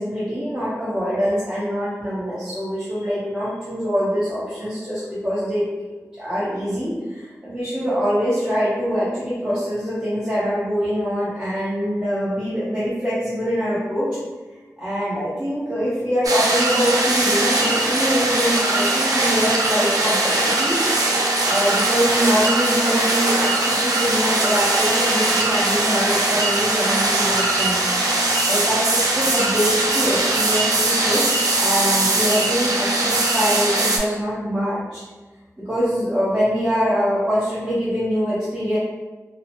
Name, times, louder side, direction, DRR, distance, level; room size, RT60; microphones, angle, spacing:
voice 1, 0.0-5.7 6.2-14.1 14.8-20.8 21.5-27.9 28.5-35.0 35.6-38.8, equal, 15° right, -11 dB, 0.7 m, -24 dB
sound 1, 16.2-34.0, right 2 dB, 90° right, 0.4 m, -20 dB
2.7 x 2.1 x 2.8 m, 1.2 s
wide cardioid pair, 85°, 6 cm